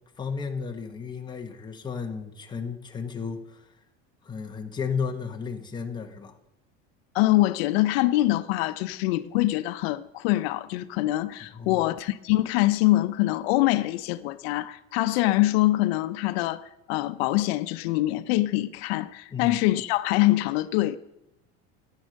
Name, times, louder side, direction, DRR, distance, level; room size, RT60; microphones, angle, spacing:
voice 1, 0.2-3.7 4.2-6.3 11.5-11.8 19.3-19.6, left 5 dB, 15° left, 1.2 m, -33 dB
voice 2, 7.1-16.6 16.9-21.0, left 17 dB, 75° left, 0.8 m, -24 dB
12.5 x 9.3 x 6.5 m
supercardioid pair, 135°, 31 cm